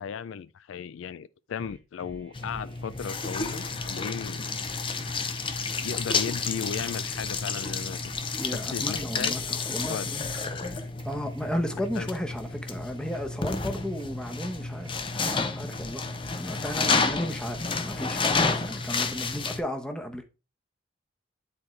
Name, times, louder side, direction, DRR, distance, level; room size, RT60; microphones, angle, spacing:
voice 1, 0.0-4.5 5.8-8.1 8.5-9.3 9.9-10.1 11.9-12.1, left 7 dB, 80° left, 0.4 m, -36 dB
sound 1, 1.6-18.5, right 1 dB, 25° right, 1.2 m, -51 dB
sound 2, 2.3-19.6, left 4 dB, 25° left, 0.6 m, -30 dB
voice 2, 8.4-10.3 11.0-16.1 16.3-20.2, equal, 5° left, 0.9 m, -34 dB
9.6 x 4.3 x 3.2 m
head